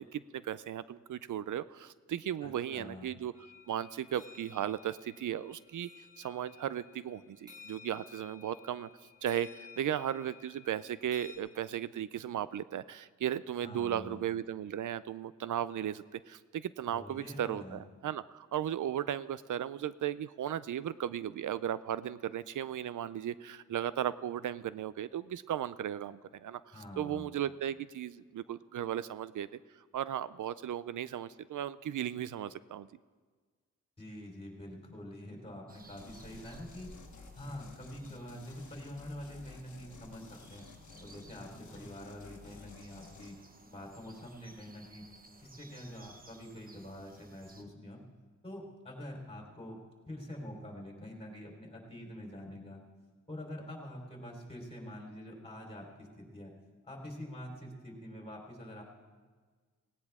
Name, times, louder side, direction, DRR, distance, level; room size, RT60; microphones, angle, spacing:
voice 1, 0.0-3.3 3.7-5.9 6.2-8.9 9.2-29.5 29.9-32.9, right 10 dB, 80° right, 16 dB, 0.5 m, -36 dB
voice 2, 2.4-3.1 13.6-14.2 16.9-17.8 26.7-27.3 34.0-36.9 37.4-40.6 41.0-45.0 45.4-48.0 48.4-49.8 50.1-52.8 53.3-56.5 56.8-58.8, left 1 dB, 20° left, -1 dB, 4.1 m, -46 dB
sound 1, 3.3-11.4, left 6 dB, 15° right, 3.8 m, -55 dB
sound 2, 35.7-47.6, right 2 dB, 30° right, 1.1 m, -58 dB
sound 3, 36.0-43.4, left 5 dB, 70° left, 1.3 m, -54 dB
18.0 x 17.0 x 3.6 m, 1.5 s
wide cardioid pair, 85°, 30 cm